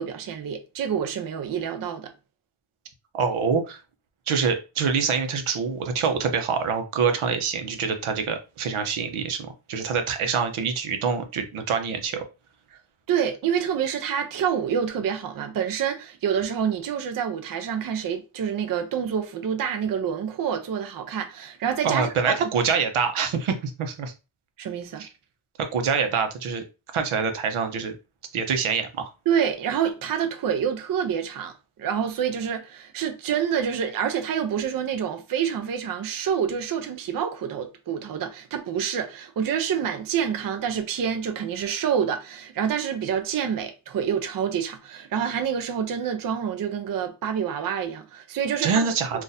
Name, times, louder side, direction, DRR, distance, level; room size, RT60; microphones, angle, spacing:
voice 1, 0.0-2.1 13.1-22.5 24.6-25.1 29.3-48.9 49.1-49.2, right 8 dB, 45° right, 0.5 m, -27 dB
voice 2, 3.1-3.8 4.3-12.2 21.8-24.1 25.0-25.1 25.7-26.6 26.9-28.0 28.3-29.1 48.6-49.2, right 6 dB, 85° right, 0.8 m, -25 dB
2.6 x 2.5 x 4.0 m
wide cardioid pair, 145°, 49 cm